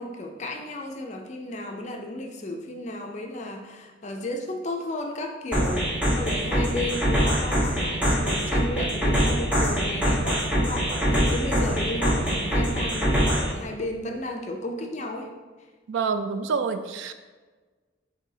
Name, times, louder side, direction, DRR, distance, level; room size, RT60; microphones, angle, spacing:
voice 1, 0.0-15.3, left 1 dB, 35° left, 3 dB, 0.4 m, -34 dB
sound 1, 5.5-13.5, equal, 10° right, 0.8 m, -24 dB
voice 2, 15.9-17.1, right 5 dB, 80° right, 9 dB, 0.3 m, -27 dB
6.9 x 2.7 x 2.7 m, 1.4 s
head